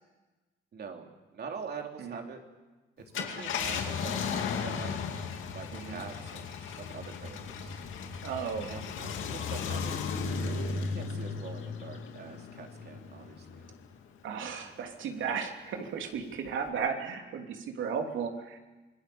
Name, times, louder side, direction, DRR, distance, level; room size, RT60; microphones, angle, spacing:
voice 1, 0.7-2.4 3.1-5.0 5.5-7.8 8.7-9.9 10.3-13.7, right 5 dB, 55° right, 2 dB, 3.4 m, -44 dB
Car, 3.0-13.8 14.3-14.4 16.5-16.7, left 5 dB, 80° left, 2.5 m, -35 dB
voice 2, 8.2-9.1 14.2-18.6, right 6 dB, 75° right, 3 dB, 3.1 m, -35 dB
26.5 x 19.5 x 7.1 m, 1.2 s
cardioid pair, 90°, 20 cm